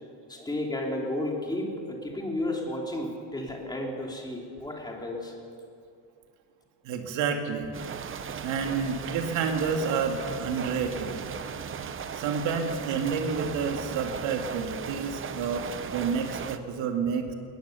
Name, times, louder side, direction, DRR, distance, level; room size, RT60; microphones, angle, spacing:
voice 1, 0.3-5.3, left 1 dB, 10° left, -1 dB, 3.2 m, -32 dB
voice 2, 6.8-7.7 8.4-11.2 12.1-17.3, right 5 dB, 80° right, 3 dB, 2.3 m, -29 dB
sound 1, 7.7-16.6, right 7 dB, 30° right, 0.8 m, -37 dB
21.5 x 20.0 x 6.9 m, 2.4 s
cardioid pair, 165°, 44 cm